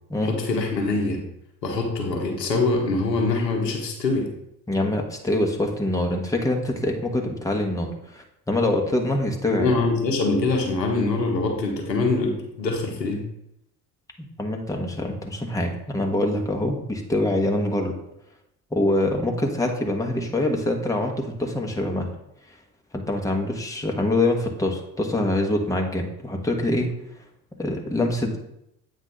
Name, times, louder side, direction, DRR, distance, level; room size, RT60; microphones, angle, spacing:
voice 1, 0.2-1.2 1.6-4.3 9.5-13.3, left 3 dB, 90° left, 1 dB, 1.1 m, -24 dB
voice 2, 4.7-9.7 14.2-17.9 18.7-22.1 22.9-26.9 27.6-28.4, left 1 dB, 5° left, 2 dB, 1.2 m, -25 dB
7.9 x 2.7 x 5.8 m, 0.81 s
hypercardioid pair, 55°, 48 cm